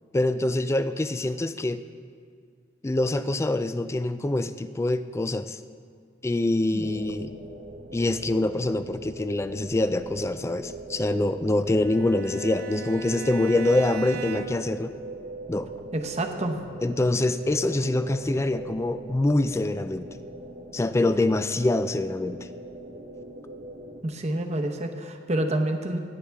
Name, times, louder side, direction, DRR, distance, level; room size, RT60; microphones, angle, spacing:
voice 1, 0.1-1.8 2.8-5.6 6.2-7.3 7.9-14.9 15.5-15.7 16.8-20.1 20.7-22.4, left 2 dB, 15° left, 11 dB, 0.3 m, -25 dB
sound 1, 6.8-24.0, right 2 dB, 80° right, 1.3 m, -41 dB
Bowed string instrument, 11.7-14.8, right 5 dB, 55° right, 0.6 m, -38 dB
voice 2, 15.9-16.6 24.0-26.0, right 1 dB, 40° right, 5 dB, 0.9 m, -28 dB
18.0 x 10.0 x 3.5 m, 2.1 s
head